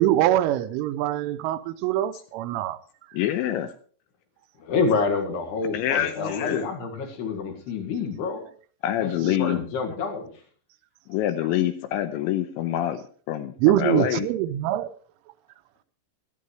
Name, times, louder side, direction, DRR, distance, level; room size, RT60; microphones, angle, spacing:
voice 1, 0.0-2.8 13.6-14.9, right 13 dB, 80° right, 11 dB, 3.1 m, -23 dB
voice 2, 3.1-3.7 5.7-6.7 8.8-9.6 11.1-14.3, left 12 dB, 80° left, 9 dB, 2.8 m, -26 dB
voice 3, 4.6-8.5 9.0-10.3, left 4 dB, 60° left, 4 dB, 3.7 m, -27 dB
17.5 x 12.5 x 3.2 m, 0.44 s
omnidirectional pair, 5.7 m